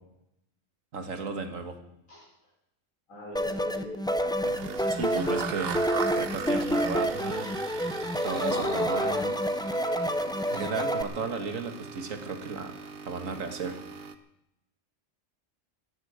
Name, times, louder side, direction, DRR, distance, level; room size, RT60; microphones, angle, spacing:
voice 1, 0.9-1.8 4.9-5.8 6.2-7.6 8.2-9.3 10.5-12.7 13.1-13.8, right 4 dB, 80° right, 6 dB, 2.0 m, -34 dB
voice 2, 3.1-4.4, equal, 90° left, -5 dB, 5.0 m, -44 dB
sound 1, 3.3-11.0, equal, 5° left, 0.4 m, -28 dB
sound 2, 4.4-14.2, right 6 dB, 50° right, 1.1 m, -40 dB
sound 3, 8.5-10.2, left 2 dB, 45° left, 2.2 m, -38 dB
18.5 x 13.5 x 5.0 m, 0.85 s
omnidirectional pair, 1.3 m